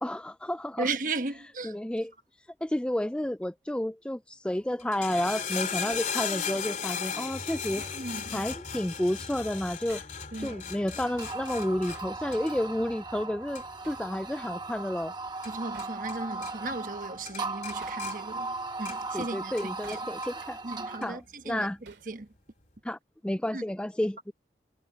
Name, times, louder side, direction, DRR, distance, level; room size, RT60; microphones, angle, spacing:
voice 1, 0.0-0.9 1.6-2.1 2.6-7.8 8.3-10.0 10.4-15.1 19.1-20.6 21.0-21.8 22.8-24.3, left 1 dB, 5° left, 0.3 m, -31 dB
voice 2, 0.8-1.8 7.9-8.5 10.3-10.6 15.4-20.0 20.6-22.3 23.5-23.6, right 3 dB, 50° right, 1.3 m, -36 dB
sound 1, 4.8-16.2 16.4-17.0 17.3-19.2 19.6-20.3 21.0-21.1, left 6 dB, 45° left, 2.9 m, -37 dB
Hammer, 5.9-6.2 7.8-8.1 9.9-10.2 11.9-12.1 13.8-14.1 15.7-16.0 17.8-18.1 19.8-20.1 21.8-22.2, right 4 dB, 90° right, 2.5 m, -52 dB
sound 2, 11.0-21.2, right 3 dB, 25° right, 1.1 m, -38 dB
head